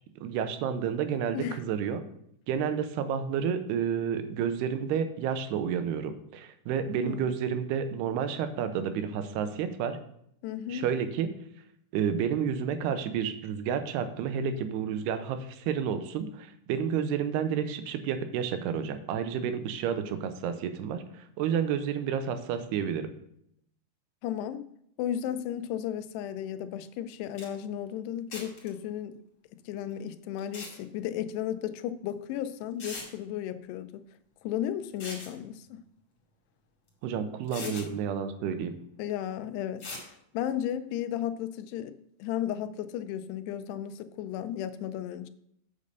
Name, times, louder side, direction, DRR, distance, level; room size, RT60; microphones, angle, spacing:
voice 1, 0.2-2.0 2.5-10.0 10.7-11.3 11.9-23.1 37.0-38.8, right 7 dB, 85° right, 9 dB, 2.7 m, -30 dB
voice 2, 6.9-7.3 10.4-10.9 24.2-24.6 25.0-29.1 29.7-34.0 34.4-35.8 37.6-37.9 39.0-39.8 40.3-45.3, left 10 dB, 85° left, 11 dB, 2.7 m, -34 dB
sound 1, 27.1-27.2 27.4-27.5 28.3-28.7 30.4-30.8 32.1-32.2 32.8-33.1 34.8-35.3 36.9-37.0 37.5-37.9 39.8-40.1, left 3 dB, 30° left, 2.8 m, -40 dB
8.4 x 5.4 x 6.6 m, 0.72 s
omnidirectional pair, 4.7 m